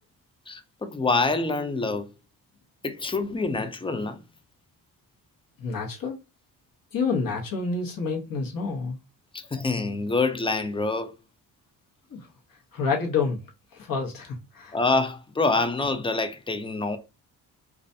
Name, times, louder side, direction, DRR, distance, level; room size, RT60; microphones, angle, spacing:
voice 1, 0.5-2.0 2.8-4.2 9.3-11.1 14.7-17.0, left 3 dB, 15° left, 0.3 m, -26 dB
voice 2, 5.6-6.1 6.9-9.0 12.1-12.2 12.7-13.4 13.7-14.7, left 4 dB, 55° left, 1.0 m, -28 dB
2.4 x 2.2 x 2.6 m
cardioid pair, 70°, 40 cm